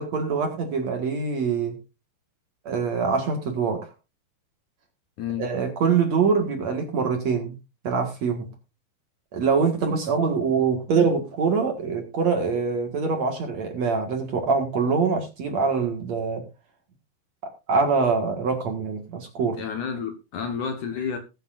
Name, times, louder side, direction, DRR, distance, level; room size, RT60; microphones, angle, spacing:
voice 1, 0.0-1.7 2.7-3.9 5.4-7.6 7.8-8.5 9.3-16.4 17.7-19.6, right 5 dB, 50° right, 2.5 m, -24 dB
voice 2, 19.6-21.2, left 7 dB, 60° left, 2.4 m, -30 dB
21.0 x 8.3 x 2.6 m
omnidirectional pair, 4.7 m